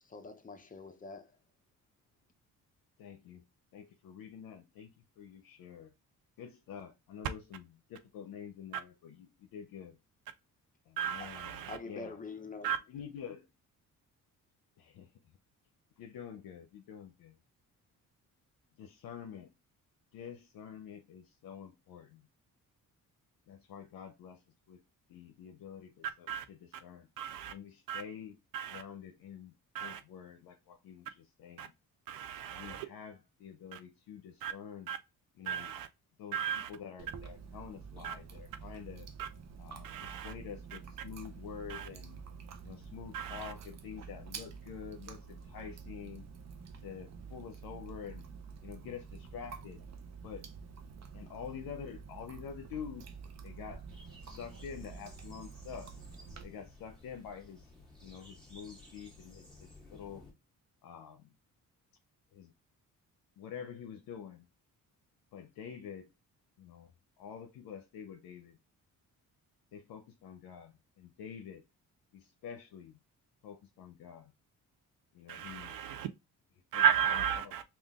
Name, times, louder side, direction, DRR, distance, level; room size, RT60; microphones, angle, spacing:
voice 1, 0.0-1.3 11.6-12.7, left 3 dB, 25° left, 0.7 m, -45 dB
voice 2, 3.0-3.4 3.7-5.9 6.4-10.0 10.9-12.2 12.9-13.5 14.8-15.4 16.0-17.4 18.8-19.5 20.1-22.3 23.5-24.8 25.1-27.1 27.5-28.4 28.7-31.7 32.5-34.9 35.4-35.7 36.2-39.1 39.6-42.2 42.6-46.3 46.8-48.3 48.6-49.8 50.2-50.5 51.1-53.1 53.4-53.9 54.2-55.9 56.4-57.7 58.0-60.2 60.8-61.3 62.3-62.5 63.4-64.5 65.3-66.1 66.6-66.9 67.2-68.6 69.7-71.6 72.1-73.0 73.4-74.3 75.1-75.8 76.7-76.8 77.1-77.6, left 7 dB, 75° left, 0.7 m, -47 dB
voice 3, 11.0-11.8 12.6-12.8 26.3-26.4 27.2-27.5 27.9-28.0 28.5-28.8 29.7-30.0 31.6-31.7 32.1-32.9 33.7-33.8 34.4-34.5 34.9-35.0 35.5-35.9 36.3-36.7 38.0-38.1 39.2-39.3 39.8-40.3 41.7-41.9 43.1-43.5 75.3-76.1 76.7-77.6, right 8 dB, 80° right, 0.5 m, -34 dB
Chewing mastication, 37.0-56.4, right 5 dB, 50° right, 0.7 m, -48 dB
sound 1, 53.9-60.3, left 2 dB, ahead, 2.0 m, -56 dB
3.7 x 2.4 x 3.5 m
cardioid pair, 90°, 34 cm